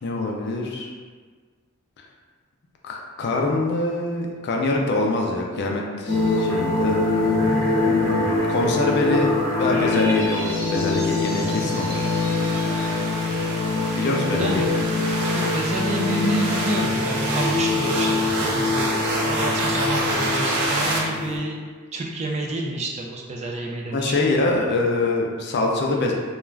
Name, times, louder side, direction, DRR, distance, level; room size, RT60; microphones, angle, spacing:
voice 1, 0.0-0.9 2.8-7.0 7.8-9.3 9.6-12.1 14.0-14.8 23.9-26.1, left 2 dB, 50° left, 0 dB, 0.4 m, -24 dB
sound 1, 6.1-21.4, left 3 dB, 15° left, 1.0 m, -24 dB
sound 2, 10.5-21.0, right 2 dB, 90° right, 0.5 m, -28 dB
voice 2, 15.3-21.6 21.9-24.3, right 2 dB, 30° right, -1 dB, 0.3 m, -29 dB
2.3 x 2.3 x 3.1 m, 1.5 s
head